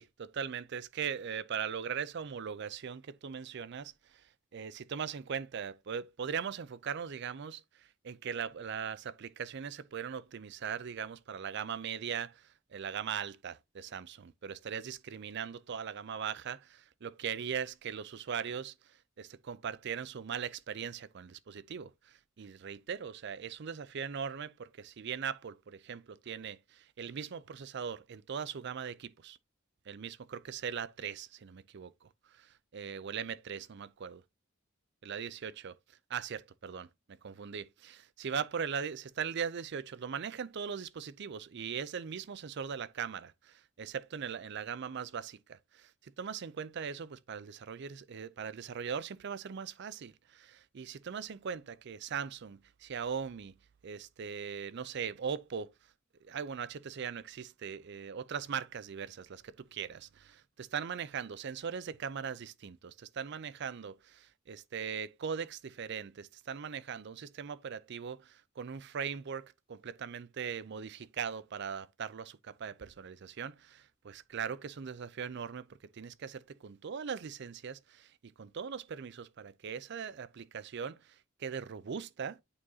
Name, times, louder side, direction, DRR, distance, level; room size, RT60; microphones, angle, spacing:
voice 1, 0.0-3.9 4.5-18.7 19.2-29.4 29.9-34.2 35.0-35.8 36.1-53.5 53.8-55.7 56.2-75.7 75.9-78.1 78.4-82.4, right 7 dB, 60° right, 0.5 m, -40 dB
8.5 x 4.7 x 2.7 m
head